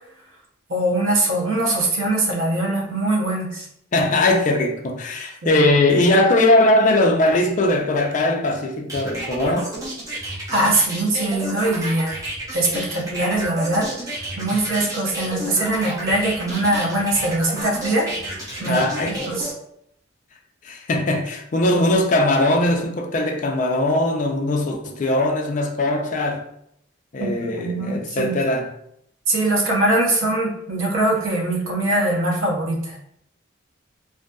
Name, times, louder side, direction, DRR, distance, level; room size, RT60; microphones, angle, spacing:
voice 1, 0.7-3.7 5.4-5.6 10.5-12.2 12.5-18.1 18.6-19.5 27.2-28.3 29.3-33.0, right 1 dB, 90° right, 0.7 m, -22 dB
voice 2, 3.9-9.7 18.6-19.3 20.6-26.4 27.1-28.7, left 1 dB, 40° left, 0.4 m, -20 dB
sound 1, 8.9-19.5, right 1 dB, 15° right, 0.6 m, -31 dB
2.5 x 2.5 x 2.2 m
head